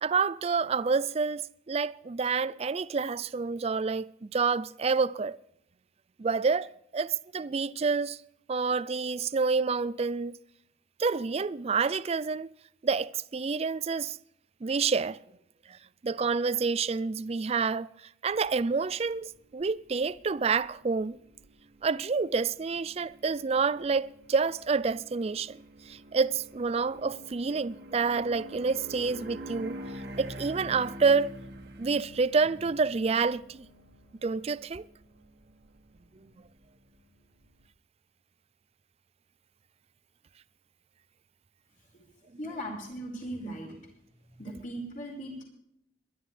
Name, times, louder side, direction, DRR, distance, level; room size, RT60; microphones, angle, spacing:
voice 1, 0.0-5.4 6.2-8.2 8.5-10.4 11.0-12.5 12.8-14.2 14.6-15.2 15.7-17.9 18.2-21.2 21.8-29.8 30.2-31.3 31.8-33.7 34.2-34.9, right 4 dB, 35° right, 0.4 m, -28 dB
sound 1, 18.3-37.6, equal, 60° right, 1.4 m, -47 dB
voice 2, 42.1-43.8 44.4-45.4, right 1 dB, 45° left, 5.1 m, -39 dB
22.0 x 12.0 x 3.4 m
head